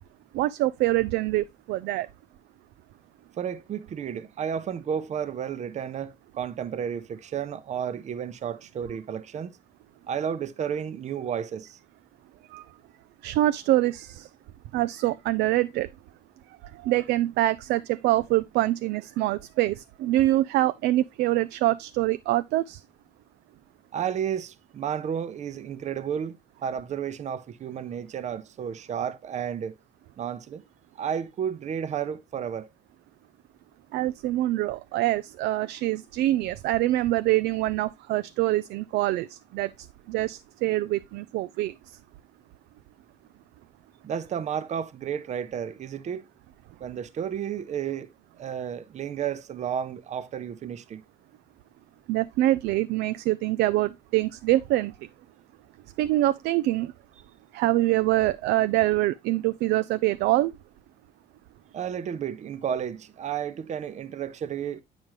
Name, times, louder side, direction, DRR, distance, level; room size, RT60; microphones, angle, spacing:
voice 1, 0.3-2.1 12.5-12.6 13.2-14.3 14.7-15.9 16.7-22.8 33.9-39.7 40.1-41.7 52.1-54.9 56.0-56.9 57.5-60.5, right 16 dB, 75° right, 0.4 m, -25 dB
voice 2, 3.4-9.5 10.1-11.8 23.9-26.4 26.6-29.8 30.2-30.6 31.0-32.7 44.0-46.3 46.8-48.1 48.4-51.0 61.7-64.8, right 8 dB, 45° right, 0.7 m, -32 dB
9.0 x 5.1 x 3.0 m
cardioid pair, 110°, 17 cm